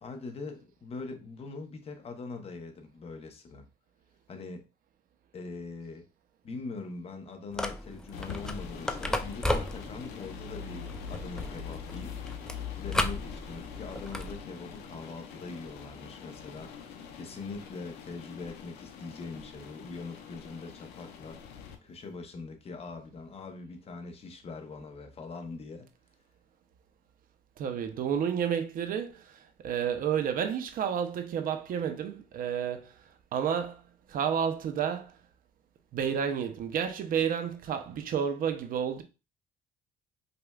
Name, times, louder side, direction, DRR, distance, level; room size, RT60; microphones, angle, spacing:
voice 1, 0.0-3.7 4.3-4.7 5.3-6.1 6.4-12.3 12.8-16.7 17.1-25.9, left 4 dB, 35° left, 0.7 m, -42 dB
sound 1, 7.5-14.4, left 1 dB, 5° left, 0.3 m, -35 dB
sound 2, 8.1-21.8, left 8 dB, 90° left, 0.6 m, -43 dB
voice 2, 27.6-29.3 29.6-32.9 33.3-33.8 34.1-35.1 35.9-39.0, right 8 dB, 55° right, 0.5 m, -30 dB
5.0 x 2.3 x 2.3 m
cardioid pair, 110°, 17 cm